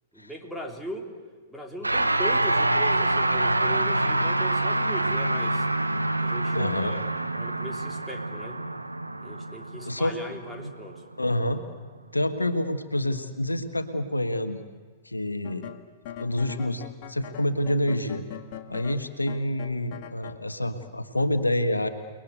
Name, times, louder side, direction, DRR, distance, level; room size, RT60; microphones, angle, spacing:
voice 1, 0.1-1.1 1.5-5.7 6.2-7.1 7.3-8.6 9.2-11.0, equal, ahead, 1 dB, 3.4 m, -39 dB
sound 1, 1.8-11.3, right 2 dB, 85° right, 1.0 m, -26 dB
voice 2, 6.5-6.9 9.8-10.4 10.6-10.7 11.2-11.6 12.1-14.6 15.0-15.7 16.2-18.2 18.7-21.9, left 1 dB, 85° left, 9 dB, 1.5 m, -27 dB
sound 2, 15.4-20.4, left 10 dB, 45° left, 1.7 m, -41 dB
30.0 x 20.5 x 8.2 m, 1.5 s
figure-of-eight pair, 105°, 0 cm